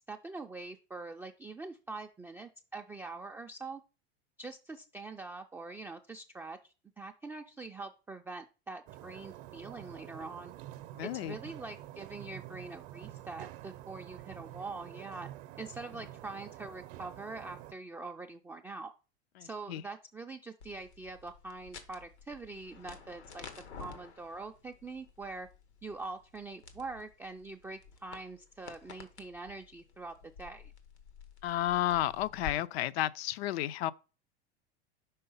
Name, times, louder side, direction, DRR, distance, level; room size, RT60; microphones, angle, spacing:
voice 1, 0.1-3.8 4.4-10.5 11.0-15.3 15.6-18.9 19.4-25.5 25.8-30.7, right 3 dB, 5° right, 0.3 m, -44 dB
sound 1, 8.9-17.7, right 14 dB, 50° right, 0.7 m, -48 dB
voice 2, 11.0-11.3 19.4-19.8 31.4-33.9, left 13 dB, 70° left, 0.5 m, -32 dB
sound 2, 20.6-32.5, left 5 dB, 85° left, 1.2 m, -51 dB
5.6 x 3.8 x 5.4 m
hypercardioid pair, 95°, 33 cm